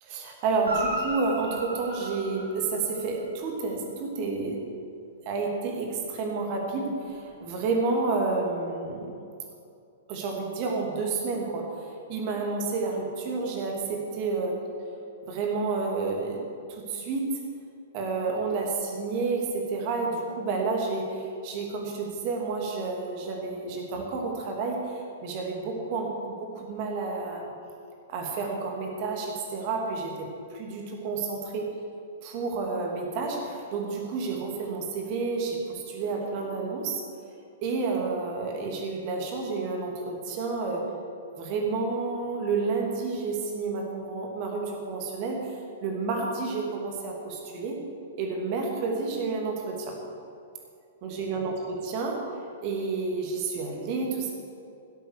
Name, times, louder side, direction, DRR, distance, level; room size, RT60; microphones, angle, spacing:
voice 1, 0.1-4.6 5.2-9.1 10.1-14.6 15.2-16.4 16.7-17.2 17.9-27.5 28.1-31.7 32.2-37.0 37.6-40.8 41.4-45.5 45.8-47.8 48.2-50.0 51.0-52.2 52.6-54.3, right 4 dB, 40° right, 1 dB, 2.8 m, -30 dB
Guitar, 0.6-3.2 7.0-7.1, right 1 dB, 65° right, 3.2 m, -35 dB
16.5 x 8.2 x 6.5 m, 2.5 s
figure-of-eight pair, 105°, 0 cm